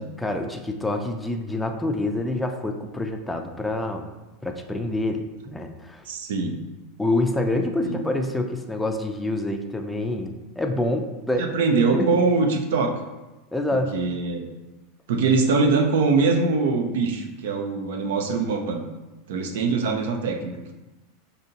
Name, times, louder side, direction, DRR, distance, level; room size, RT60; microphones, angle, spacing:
voice 1, 0.2-4.1 4.4-6.0 7.0-11.5 11.9-12.1 13.5-13.9, left 1 dB, 5° left, 4 dB, 0.4 m, -27 dB
voice 2, 6.1-6.6 7.8-8.0 11.4-12.9 13.7-14.5 15.1-18.8 19.3-20.7, right 4 dB, 80° right, 4 dB, 0.6 m, -23 dB
5.1 x 2.7 x 2.8 m, 1.1 s
supercardioid pair, 125°, 0 cm